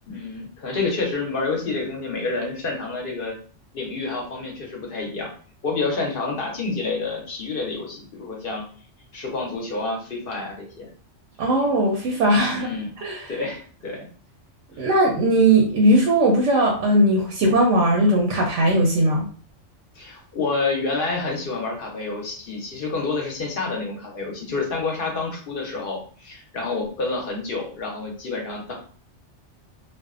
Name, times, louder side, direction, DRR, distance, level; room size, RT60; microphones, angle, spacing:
voice 1, 0.1-3.4 3.7-5.3 5.6-8.6 9.1-10.9 12.5-12.9 13.3-14.1 20.0-28.7, left 3 dB, 55° left, -1 dB, 0.7 m, -28 dB
voice 2, 11.4-13.4 14.8-19.3, right 1 dB, 85° right, 0 dB, 0.9 m, -19 dB
2.5 x 2.1 x 2.4 m, 0.43 s
omnidirectional pair, 1.2 m